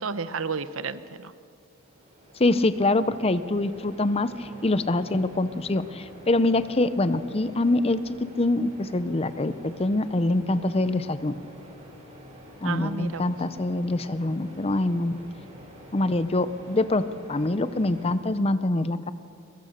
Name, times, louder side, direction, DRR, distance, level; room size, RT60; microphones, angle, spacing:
voice 1, 0.0-1.3 12.6-13.3, right 4 dB, 65° right, 13 dB, 0.9 m, -31 dB
sound 1, 1.6-18.2, equal, 30° right, 5.7 m, -47 dB
voice 2, 2.4-11.3 12.6-15.2 15.9-19.1, left 2 dB, 30° left, 13 dB, 0.6 m, -25 dB
23.0 x 22.5 x 6.6 m, 2.5 s
head